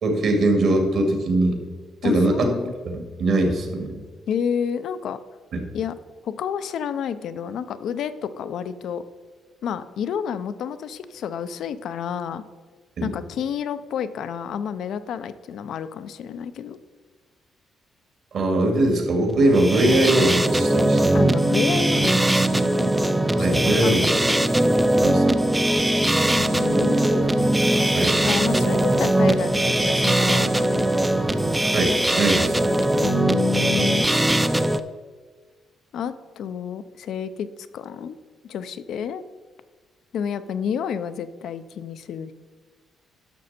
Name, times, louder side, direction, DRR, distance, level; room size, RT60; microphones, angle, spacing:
voice 1, 0.0-1.6 2.0-2.5 2.8-3.9 5.5-5.6 13.0-13.1 18.3-21.1 23.3-24.1 25.0-25.4 26.7-27.3 27.9-28.2 31.6-32.7, right 1 dB, 65° right, 3 dB, 2.4 m, -21 dB
voice 2, 2.0-2.7 4.3-5.2 5.7-5.9 6.2-9.0 9.6-12.4 13.0-16.8 19.9-20.0 21.1-22.9 23.5-24.5 24.8-24.9 26.4-27.0 28.2-30.9 33.0-34.1 35.9-37.5 37.7-38.2 38.4-39.2 40.1-42.3, left 8 dB, 75° left, 12 dB, 0.6 m, -30 dB
sound 1, 19.4-34.8, right 1 dB, 10° right, 0.5 m, -20 dB
sound 2, 26.2-31.6, right 6 dB, 80° right, 1.0 m, -39 dB
11.5 x 6.6 x 4.4 m, 1.4 s
cardioid pair, 90°, 0 cm